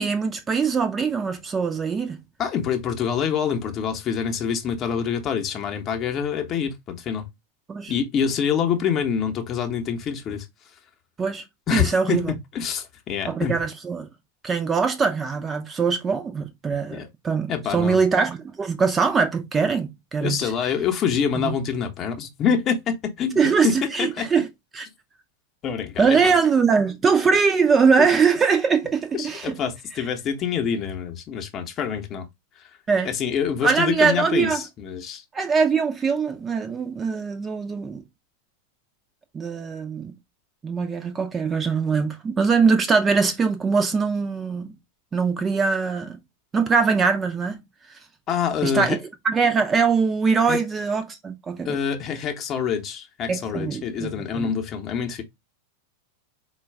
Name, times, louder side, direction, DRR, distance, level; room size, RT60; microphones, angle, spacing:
voice 1, 0.0-2.2 7.7-7.9 11.2-11.4 11.7-12.3 13.3-14.1 14.4-20.5 23.4-24.5 24.7-24.9 26.0-29.6 32.9-33.1 33.6-34.6 35.3-38.0 39.3-40.1 40.6-44.8 45.1-46.2 46.5-47.6 48.6-49.0 49.2-51.8 53.3-54.5, right 5 dB, 20° right, 0.5 m, -22 dB
voice 2, 2.4-7.3 7.9-10.5 11.7-13.6 16.9-17.1 17.5-18.0 20.2-24.3 25.6-26.2 27.2-27.3 28.0-28.1 29.1-32.3 33.0-35.2 48.3-49.0 50.5-50.6 51.6-55.2, left 7 dB, 30° left, 0.8 m, -26 dB
4.4 x 2.3 x 3.3 m
figure-of-eight pair, 90°, 0 cm